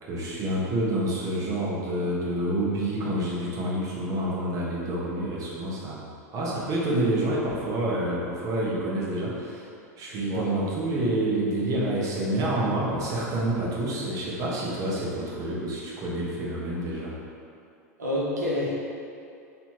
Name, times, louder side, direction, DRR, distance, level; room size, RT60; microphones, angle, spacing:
voice 1, 0.0-6.0 6.3-9.7 10.0-17.1, right 1 dB, 40° right, -5 dB, 1.2 m, -28 dB
voice 2, 10.1-10.5 18.0-18.7, left 1 dB, 90° right, -7 dB, 1.1 m, -28 dB
3.3 x 2.9 x 4.5 m, 2.5 s
hypercardioid pair, 90°, 9 cm